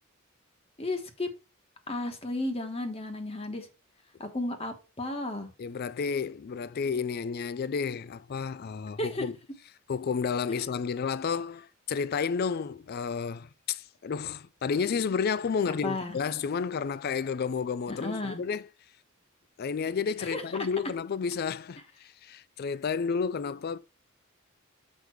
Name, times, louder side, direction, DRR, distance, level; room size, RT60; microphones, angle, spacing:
voice 1, 0.8-1.3 1.9-3.7 4.2-5.5 9.0-9.2 15.7-16.2 17.9-18.4 20.2-20.4, left 2 dB, 30° left, 1.2 m, -33 dB
voice 2, 5.6-9.4 9.9-18.7 19.6-23.8, left 6 dB, 45° left, 0.4 m, -31 dB
6.6 x 5.0 x 4.5 m
head